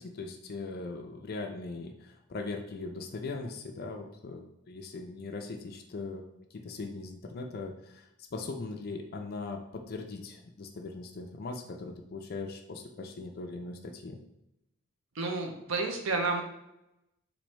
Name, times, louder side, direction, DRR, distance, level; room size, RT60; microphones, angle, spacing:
voice 1, 0.0-6.2 6.5-14.2, left 3 dB, 50° left, 4 dB, 0.4 m, -40 dB
voice 2, 15.2-16.4, right 3 dB, 70° right, 3 dB, 0.6 m, -30 dB
4.3 x 2.6 x 3.1 m, 0.87 s
head